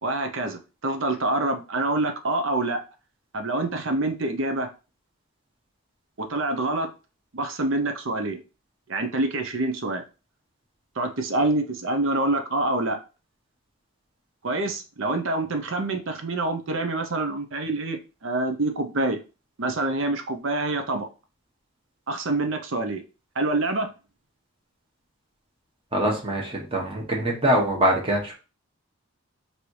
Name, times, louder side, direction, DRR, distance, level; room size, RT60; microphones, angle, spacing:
voice 1, 0.0-2.8 3.3-4.7 6.2-6.9 7.3-8.4 8.9-10.0 11.0-13.0 14.4-19.2 19.6-21.1 22.1-23.0 23.4-23.9, right 2 dB, 55° right, 0.7 m, -26 dB
voice 2, 25.9-28.3, right 1 dB, 25° right, 1.2 m, -23 dB
3.3 x 2.7 x 4.5 m
head